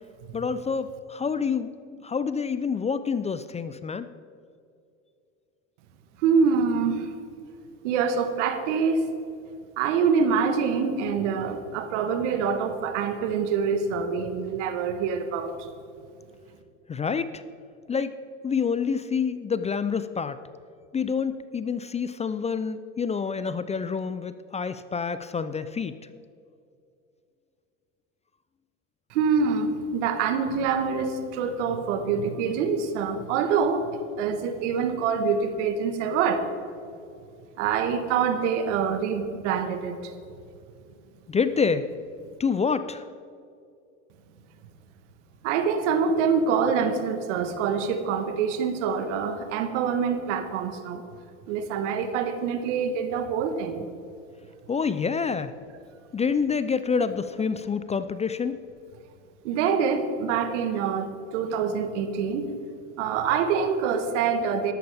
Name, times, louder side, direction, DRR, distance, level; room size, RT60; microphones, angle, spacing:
voice 1, 0.3-1.7 2.0-4.1 16.9-17.4 17.9-18.1 18.4-20.4 20.9-25.9 41.3-41.9 42.4-43.0 54.7-55.5 56.1-58.6, left 5 dB, 20° left, 12 dB, 0.4 m, -27 dB
voice 2, 6.2-7.1 7.8-9.1 9.8-15.7 29.1-36.5 37.6-40.1 45.4-51.0 51.5-53.9 59.4-62.6 63.0-64.7, right 6 dB, 75° right, 8 dB, 1.4 m, -25 dB
13.5 x 12.0 x 3.5 m, 2.5 s
hypercardioid pair, 80°, 37 cm